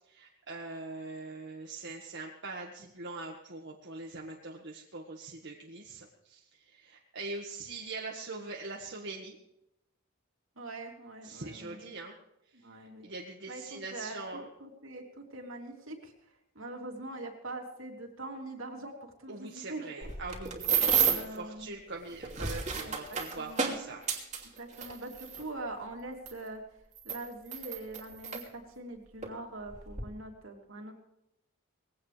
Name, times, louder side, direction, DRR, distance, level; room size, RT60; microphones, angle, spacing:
voice 1, 0.1-9.4 11.2-12.2 12.8-14.5 19.3-24.0, right 3 dB, 60° right, -1 dB, 1.8 m, -42 dB
voice 2, 10.6-11.9 12.5-13.1 13.5-16.1 16.5-20.1 21.0-21.7 22.7-22.9 23.4-23.8 24.4-26.6 27.0-30.9, right 2 dB, 75° right, 1 dB, 3.2 m, -43 dB
sound 1, 20.0-21.4 22.1-25.4 26.3-26.4 26.9-28.4 29.2-29.3 29.7-30.0, right 7 dB, 35° right, 2.8 m, -31 dB
20.5 x 16.5 x 3.4 m, 0.85 s
head